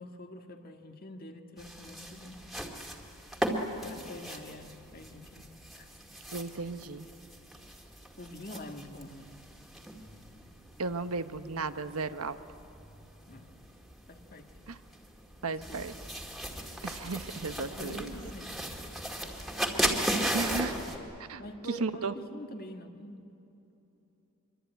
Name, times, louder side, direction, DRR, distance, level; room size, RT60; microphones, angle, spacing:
voice 1, 0.0-2.4 3.8-5.9 8.2-9.3 13.3-13.5 14.1-14.5 15.5-15.8 17.8-18.8 21.4-23.3, left 1 dB, 40° left, 5 dB, 1.8 m, -45 dB
sound 1, 1.6-21.0, right 1 dB, ahead, 2.1 m, -37 dB
voice 2, 6.3-7.1 10.8-12.4 14.7-14.8 15.4-15.9 16.8-18.1 20.3-20.7 21.3-21.4 21.8-22.1, right 4 dB, 80° right, 10 dB, 1.0 m, -34 dB
25.0 x 23.5 x 9.3 m, 2.9 s
head